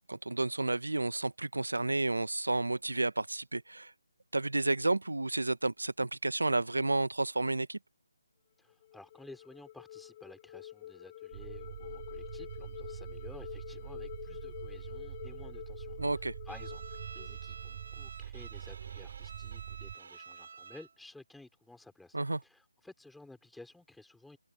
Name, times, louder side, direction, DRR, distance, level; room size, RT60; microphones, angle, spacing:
voice 1, 0.1-3.9 4.3-7.8 16.0-16.3 22.1-22.4, right 2 dB, 85° right, 1.3 m, -31 dB
voice 2, 8.6-22.2 22.4-24.4, left 2 dB, ahead, 5.8 m, -54 dB
sound 1, 8.7-17.9, left 13 dB, 30° left, 6.2 m, -48 dB
sound 2, 11.3-20.0, right 10 dB, 35° right, 7.1 m, -44 dB
Bowed string instrument, 16.5-21.0, right 5 dB, 55° right, 6.3 m, -50 dB
figure-of-eight pair, 155°, 0 cm